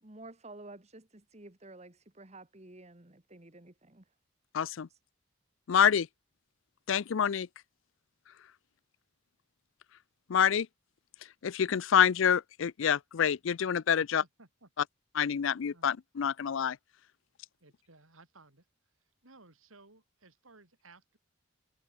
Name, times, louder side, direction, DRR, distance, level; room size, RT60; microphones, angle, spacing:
voice 1, 0.0-4.0 4.9-5.0, right 2 dB, 30° right, 1.6 m, -51 dB
voice 2, 4.5-4.9 5.7-6.1 6.9-7.5 10.3-10.7 11.4-14.2 15.2-16.8, left 8 dB, 70° left, 0.4 m, -27 dB
voice 3, 14.0-14.7 15.7-15.9 17.6-18.7 19.0-21.2, right 3 dB, 80° right, 4.4 m, -59 dB
head